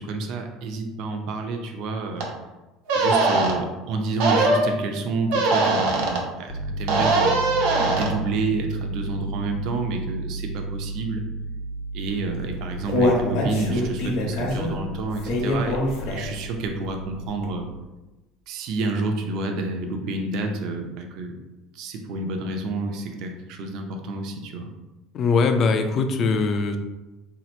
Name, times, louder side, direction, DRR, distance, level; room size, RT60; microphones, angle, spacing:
voice 1, 0.0-2.3 2.9-7.4 7.8-11.2 11.9-17.7 18.5-21.4 21.7-24.7, right 2 dB, 55° right, 4 dB, 0.5 m, -29 dB
sound 1, 2.2-2.3 2.9-3.5 4.2-4.7 5.3-6.2 6.9-8.1, right 3 dB, 80° right, 0.8 m, -20 dB
Piano, 6.5-17.8, right 2 dB, 85° left, 0.7 m, -33 dB
Human voice, 12.3-16.5 16.9-17.0 17.4-17.5, left 1 dB, 60° left, 0.9 m, -24 dB
voice 2, 25.1-26.8, left 4 dB, 40° left, 7 dB, 0.3 m, -21 dB
2.8 x 2.4 x 4.2 m, 1.1 s
cardioid pair, 150°, 0 cm